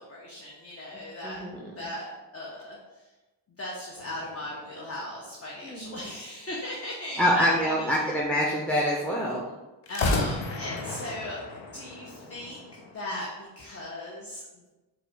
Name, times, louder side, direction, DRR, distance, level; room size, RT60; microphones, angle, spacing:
voice 1, 0.0-1.4 1.7-3.1 3.5-8.2 9.9-14.6, left 1 dB, 30° left, -4 dB, 1.0 m, -38 dB
voice 2, 1.2-1.6 5.6-5.9 7.2-9.4, equal, 5° left, -4 dB, 0.7 m, -25 dB
sound 1, 4.0-5.8 9.8-12.9, left 2 dB, 65° left, 0.8 m, -33 dB
4.6 x 2.6 x 3.5 m, 1.1 s
supercardioid pair, 40°, 47 cm